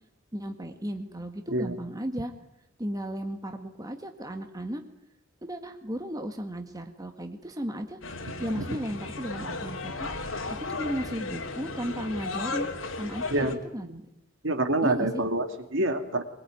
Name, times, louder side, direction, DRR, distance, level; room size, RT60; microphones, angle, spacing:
voice 1, 0.3-2.3 2.8-4.8 5.4-8.0 8.4-12.7 13.0-14.0 14.8-15.2, equal, 20° right, 5 dB, 1.8 m, -35 dB
sound 1, 8.0-13.5, left 3 dB, 70° left, 3.1 m, -35 dB
voice 2, 14.4-16.2, right 2 dB, 65° right, 7 dB, 2.6 m, -26 dB
22.5 x 22.0 x 9.4 m, 0.78 s
head